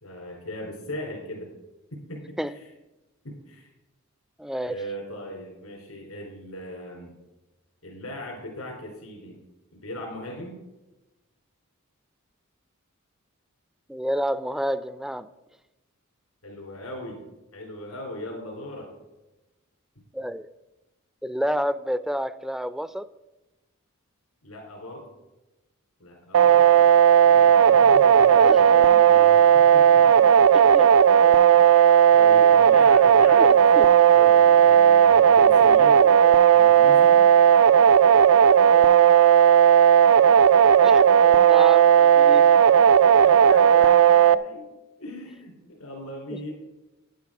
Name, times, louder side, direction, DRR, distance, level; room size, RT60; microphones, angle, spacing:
voice 1, 0.0-1.5 1.9-2.7 3.2-3.7 4.7-7.2 7.8-9.4 9.7-10.6 16.4-17.2 17.5-18.9 24.4-25.1 26.0-27.0 27.3-30.5 31.5-31.7 32.1-36.2 36.5-37.3 43.2-44.7 45.0-46.5, left 1 dB, 90° left, 0 dB, 3.3 m, -38 dB
voice 2, 4.4-4.8 13.9-15.3 20.1-20.5 21.2-23.1 28.3-28.6 30.5-30.9 33.3-33.9 40.8-41.0 41.3-42.6 46.3-46.4, equal, ahead, 14 dB, 0.4 m, -29 dB
sound 1, 26.3-44.4, right 8 dB, 75° right, 0.4 m, -15 dB
10.5 x 10.5 x 4.8 m, 1.0 s
head